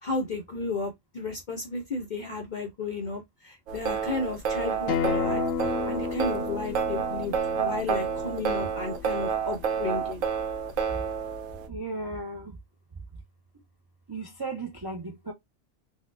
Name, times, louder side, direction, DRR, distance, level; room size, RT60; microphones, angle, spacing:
voice 1, 0.0-5.4 5.9-10.2, left 3 dB, 55° left, 0.6 m, -33 dB
sound 1, 3.7-11.7, right 7 dB, 85° right, 1.0 m, -29 dB
Acoustic guitar, 4.9-10.1, left 6 dB, 85° left, 1.0 m, -33 dB
voice 2, 11.7-12.6 14.1-15.3, right 3 dB, 35° right, 0.4 m, -35 dB
4.0 x 2.1 x 2.4 m
omnidirectional pair, 1.3 m